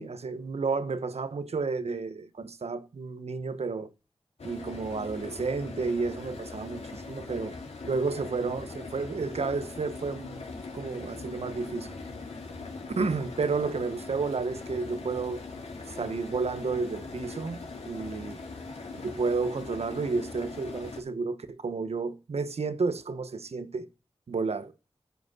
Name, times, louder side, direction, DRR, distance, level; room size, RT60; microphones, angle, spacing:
voice 1, 0.0-3.9 4.4-7.6 7.8-10.4 10.7-11.9 13.0-15.4 16.0-17.6 17.8-18.4 18.9-23.9 24.3-24.7, right 4 dB, 80° right, 1.2 m, -31 dB
sound 1, 4.4-21.0, left 3 dB, 90° left, 2.4 m, -41 dB
13.0 x 5.1 x 6.2 m
cardioid pair, 40°, 11 cm